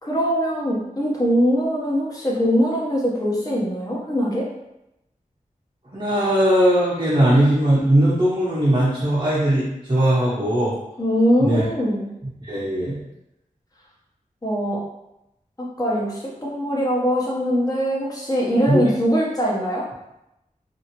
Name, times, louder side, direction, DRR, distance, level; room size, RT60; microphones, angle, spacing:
voice 1, 0.0-4.5 11.0-12.1 14.4-14.8 15.8-19.8, equal, 25° left, -5 dB, 1.0 m, -22 dB
voice 2, 5.9-10.7 11.4-11.6 12.4-13.0 18.7-18.8, right 1 dB, 35° right, -9 dB, 0.9 m, -19 dB
2.8 x 2.8 x 2.9 m, 0.88 s
wide cardioid pair, 70°, 14 cm